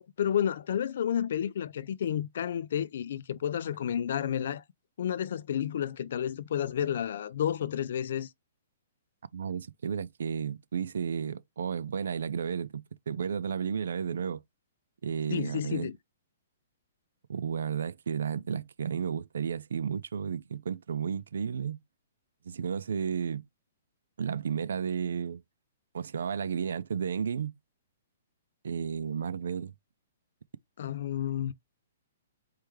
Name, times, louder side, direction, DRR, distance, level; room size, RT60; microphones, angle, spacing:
voice 1, 0.0-4.6 5.0-8.3 15.3-15.9 30.8-31.5, left 9 dB, 65° left, 0.5 m, -31 dB
voice 2, 9.3-14.4 15.0-15.9 17.3-21.8 22.4-23.5 24.2-25.4 25.9-27.5 28.6-29.7, right 7 dB, 80° right, 0.5 m, -33 dB
4.7 x 3.4 x 3.1 m
hypercardioid pair, 155°, 0 cm